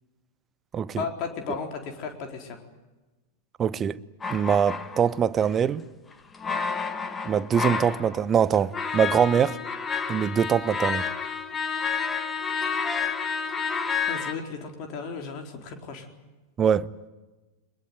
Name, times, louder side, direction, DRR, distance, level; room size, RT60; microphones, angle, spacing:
voice 1, 1.0-2.6 14.1-16.1, left 5 dB, 40° left, 4.2 m, -35 dB
voice 2, 3.6-4.0 4.3-5.8 7.2-9.6 10.1-11.1 16.6-16.9, right 8 dB, 25° right, 0.8 m, -23 dB
sound 1, 4.2-5.5 6.3-8.2 8.5-14.3, left 5 dB, 15° left, 1.6 m, -30 dB
23.0 x 21.5 x 9.5 m
figure-of-eight pair, 90°, 0 cm